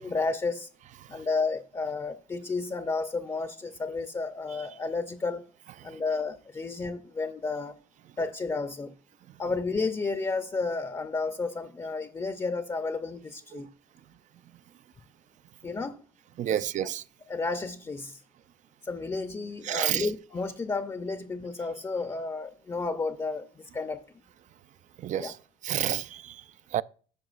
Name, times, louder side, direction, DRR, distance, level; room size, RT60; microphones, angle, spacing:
voice 1, 0.0-0.7 1.1-5.5 5.8-7.8 8.2-8.9 9.4-13.7 15.6-16.0 17.3-18.2 18.8-24.0 25.2-25.3, left 3 dB, 20° left, 0.6 m, -32 dB
voice 2, 16.4-17.0 19.6-20.1 25.0-25.4 25.6-26.8, right 11 dB, 45° right, 0.4 m, -31 dB
13.0 x 5.8 x 2.4 m
cardioid pair, 110°, 17 cm